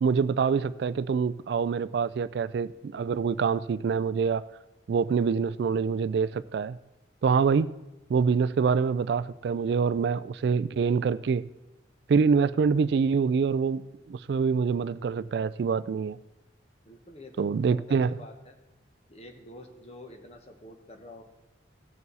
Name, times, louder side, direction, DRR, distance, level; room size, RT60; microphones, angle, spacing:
voice 1, 0.0-4.5 4.9-6.8 7.2-7.7 8.1-11.4 12.1-13.8 14.1-16.2 17.4-18.1, right 5 dB, 65° right, 0.3 m, -25 dB
voice 2, 16.8-18.6 19.1-21.2, left 1 dB, 35° left, 1.2 m, -48 dB
17.0 x 6.8 x 4.1 m
head